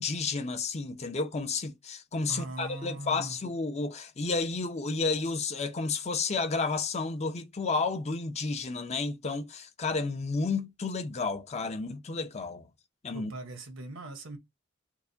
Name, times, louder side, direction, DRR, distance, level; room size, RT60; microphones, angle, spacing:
voice 1, 0.0-12.7 13.0-13.3, left 4 dB, 35° left, 0.5 m, -31 dB
voice 2, 2.3-3.4 13.1-14.4, right 2 dB, 75° right, 1.0 m, -40 dB
4.5 x 2.1 x 2.6 m
head